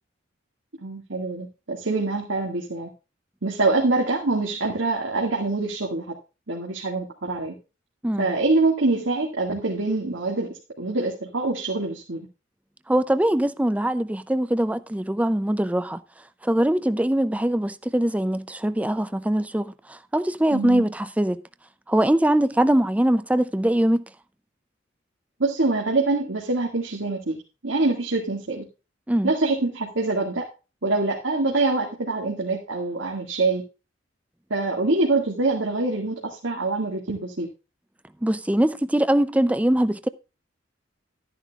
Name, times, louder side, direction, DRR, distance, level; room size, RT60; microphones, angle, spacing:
voice 1, 0.8-2.9 3.4-6.1 6.5-7.5 8.2-12.3 20.5-20.8 25.4-27.4 27.6-28.6 29.2-30.4 30.8-33.6 34.5-37.5, right 3 dB, 90° right, 2.0 m, -25 dB
voice 2, 12.9-16.0 16.4-21.4 21.9-24.0 29.1-29.3 38.2-40.1, right 1 dB, 5° right, 0.4 m, -22 dB
13.0 x 10.0 x 2.4 m
head